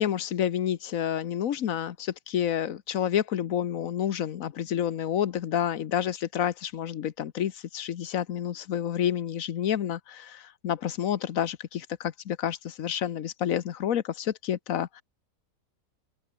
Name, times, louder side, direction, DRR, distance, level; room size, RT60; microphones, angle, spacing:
voice 1, 0.0-15.0, left 10 dB, 60° left, 1.2 m, -29 dB
open air
omnidirectional pair, 1.7 m